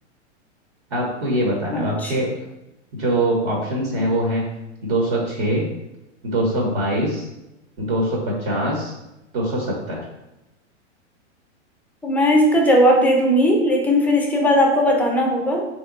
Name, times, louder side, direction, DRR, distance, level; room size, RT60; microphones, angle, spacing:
voice 1, 0.9-2.3 2.9-4.4 4.8-5.7 6.2-7.3 7.8-8.9 9.3-10.0, right 1 dB, 50° right, -1 dB, 1.1 m, -23 dB
voice 2, 1.7-2.1 12.0-15.7, equal, 5° left, 0 dB, 0.4 m, -17 dB
3.3 x 2.9 x 3.7 m, 0.94 s
hypercardioid pair, 125°, 36 cm